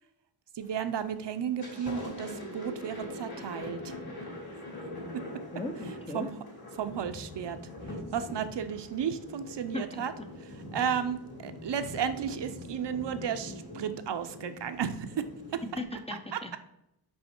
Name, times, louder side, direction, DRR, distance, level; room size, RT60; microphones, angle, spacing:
voice 1, 0.5-4.0 5.1-5.2 6.1-6.3 6.7-7.6 7.8-10.1 10.4-15.2 15.5-15.8 16.3-16.6, right 8 dB, 65° right, 9 dB, 0.6 m, -33 dB
Thunder, 0.6-1.0 1.4-15.8, left 1 dB, 50° left, 2.6 m, -43 dB
voice 2, 5.5-6.3 9.7-10.0 15.8-16.5, left 2 dB, 15° left, 5 dB, 0.5 m, -37 dB
5.5 x 5.4 x 4.4 m, 0.85 s
wide cardioid pair, 140°, 46 cm